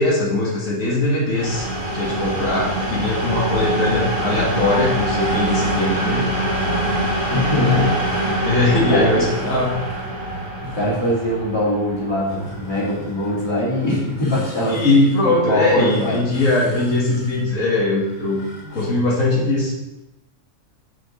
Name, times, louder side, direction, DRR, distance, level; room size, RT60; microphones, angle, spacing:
voice 1, 0.0-1.7 1.9-6.3 8.4-9.8 14.7-18.5 18.7-19.7, left 2 dB, 80° left, -5 dB, 2.3 m, -20 dB
sound 1, 1.3-13.0, right 1 dB, 25° right, 2.7 m, -24 dB
sound 2, 2.2-18.8, right 1 dB, 55° left, 2.1 m, -38 dB
voice 2, 7.3-7.9 8.2-8.4 8.9-9.2 10.7-14.8 15.4-16.2, left 1 dB, 20° left, -7 dB, 3.0 m, -22 dB
6.4 x 6.3 x 5.1 m, 0.95 s
omnidirectional pair, 1.4 m